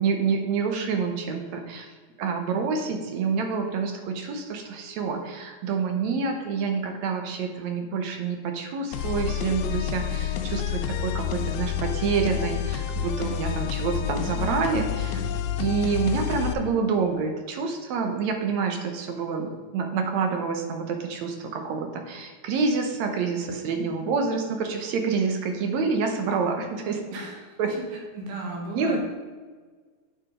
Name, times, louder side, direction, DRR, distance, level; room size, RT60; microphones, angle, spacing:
voice 1, 0.0-1.9 2.2-15.2 15.6-27.0 27.6-27.7 28.7-29.0, right 5 dB, 70° right, 4 dB, 2.0 m, -27 dB
sound 1, 8.9-16.5, left 9 dB, 80° left, 1.8 m, -29 dB
voice 2, 27.1-27.8 28.2-29.0, right 2 dB, 85° right, -1 dB, 3.1 m, -35 dB
8.4 x 4.9 x 5.0 m, 1.5 s
omnidirectional pair, 3.6 m